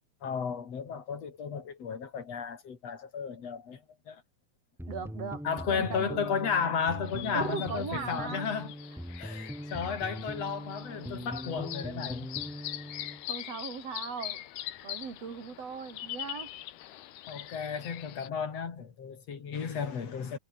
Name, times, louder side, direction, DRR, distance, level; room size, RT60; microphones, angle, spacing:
voice 1, 0.2-4.2 5.4-8.7 9.2-12.3 12.6-12.7 17.3-20.4, left 6 dB, 45° left, 3.7 m, -34 dB
sound 1, 4.8-13.2, equal, ahead, 1.2 m, -41 dB
voice 2, 4.9-6.3 7.3-8.5 13.3-14.4 14.8-16.5, right 6 dB, 45° right, 4.0 m, -38 dB
sound 2, 7.0-18.3, left 13 dB, 90° left, 3.4 m, -43 dB
omnidirectional pair, 4.4 m